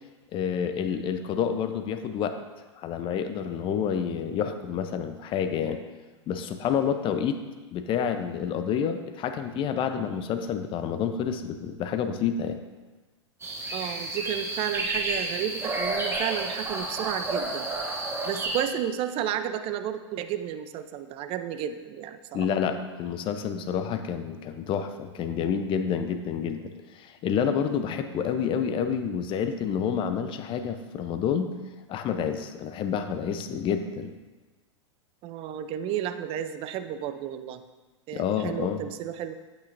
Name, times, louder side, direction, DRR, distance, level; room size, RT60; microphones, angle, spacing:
voice 1, 0.3-2.4 2.8-5.8 6.3-7.4 7.7-12.6 22.3-31.5 31.9-34.1 38.1-38.8, left 7 dB, 35° left, 8 dB, 0.7 m, -29 dB
sound 1, 13.4-18.6, right 2 dB, 15° right, 1.4 m, -31 dB
voice 2, 13.7-17.7 18.2-22.5 35.2-37.6 38.1-39.3, right 10 dB, 35° right, 10 dB, 0.6 m, -32 dB
8.5 x 8.4 x 2.6 m, 1.3 s
hypercardioid pair, 100°, 16 cm